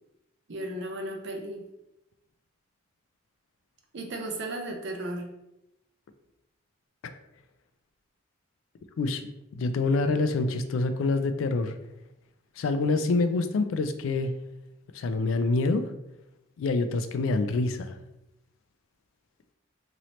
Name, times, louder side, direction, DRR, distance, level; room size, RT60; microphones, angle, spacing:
voice 1, 0.5-1.7 3.9-5.3, right 1 dB, 60° right, 3 dB, 0.6 m, -35 dB
voice 2, 9.0-11.7 12.6-14.3 14.9-15.8 16.6-18.0, left 3 dB, 70° left, 9 dB, 0.3 m, -26 dB
3.0 x 2.8 x 2.9 m, 0.90 s
head